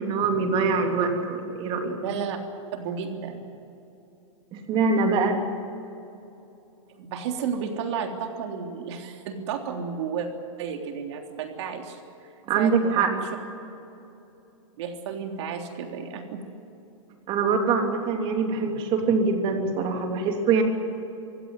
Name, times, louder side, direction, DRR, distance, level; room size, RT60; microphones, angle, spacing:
voice 1, 0.0-2.0 4.5-5.5 12.5-13.1 17.3-20.6, right 4 dB, 30° right, 3 dB, 3.1 m, -24 dB
voice 2, 2.0-2.4 2.8-3.4 7.0-10.3 10.6-12.0 12.6-13.3 14.8-16.4, right 6 dB, 60° right, 3 dB, 3.5 m, -32 dB
23.5 x 16.0 x 9.8 m, 2.9 s
hypercardioid pair, 150°, 16 cm